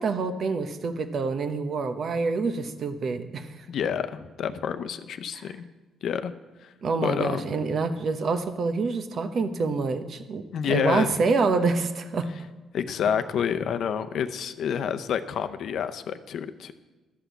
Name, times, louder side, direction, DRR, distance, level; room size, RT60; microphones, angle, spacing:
voice 1, 0.0-3.7 5.3-5.5 6.8-12.3, right 4 dB, 55° right, 9 dB, 1.0 m, -27 dB
voice 2, 3.7-5.7 6.0-6.3 6.6-6.7 7.0-7.5 10.5-11.1 12.7-16.7, left 8 dB, 70° left, 9 dB, 0.7 m, -28 dB
12.5 x 5.9 x 8.2 m, 1.2 s
cardioid pair, 90°, 0 cm